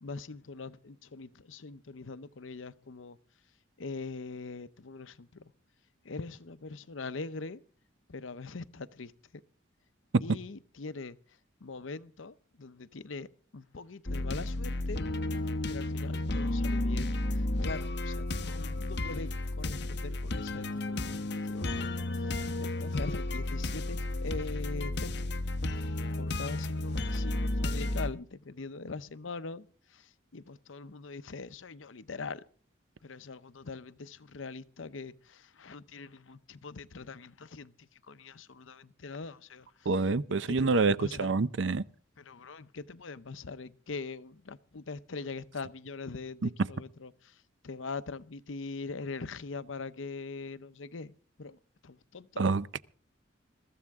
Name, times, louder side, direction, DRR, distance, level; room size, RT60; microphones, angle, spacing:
voice 1, 0.0-3.2 3.8-5.5 6.0-7.6 8.1-9.4 10.2-11.2 11.6-13.3 13.5-15.0 15.7-25.1 26.2-32.4 33.0-39.9 40.3-41.3 42.2-51.1 51.4-52.5, left 4 dB, 85° left, 0.7 m, -42 dB
sound 1, 14.1-28.1, left 2 dB, 60° left, 1.1 m, -32 dB
voice 2, 39.9-41.8 46.4-46.5 52.4-52.9, right 3 dB, 70° right, 0.6 m, -27 dB
22.0 x 14.5 x 3.6 m
head